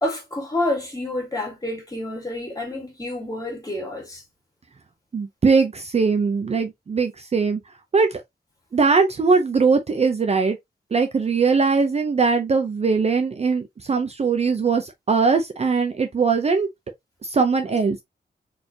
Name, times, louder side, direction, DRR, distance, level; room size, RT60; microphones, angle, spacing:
voice 1, 0.0-4.2, left 1 dB, 20° left, 2.1 m, -28 dB
voice 2, 5.1-7.6 7.9-8.2 8.7-10.6 10.9-16.7 17.2-18.0, right 4 dB, 35° right, 0.5 m, -20 dB
4.2 x 3.2 x 2.7 m
wide cardioid pair, 165°, 18 cm